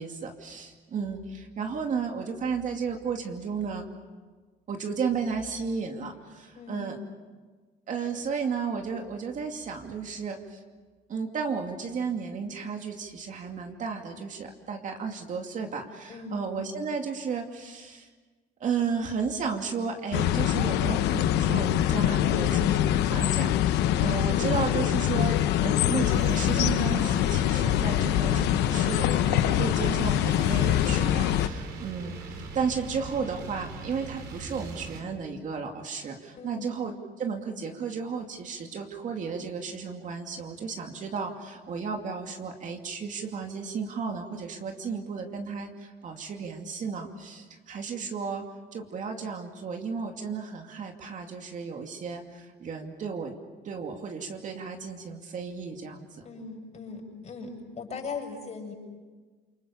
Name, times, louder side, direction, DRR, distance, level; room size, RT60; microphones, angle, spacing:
voice 1, 0.0-3.9 4.7-7.0 7.9-10.6 11.1-18.1 18.6-53.3 53.6-56.3, right 5 dB, 50° right, 3 dB, 2.5 m, -33 dB
voice 2, 6.5-6.9 16.1-16.4 36.4-36.7 56.2-58.7, left 4 dB, 40° left, 1 dB, 7.4 m, -39 dB
sound 1, 20.1-31.5, left 12 dB, 85° left, 0.9 m, -24 dB
sound 2, 25.8-35.0, right 3 dB, 80° right, 3.7 m, -40 dB
28.0 x 24.5 x 7.0 m, 1.4 s
cardioid pair, 110°, 17 cm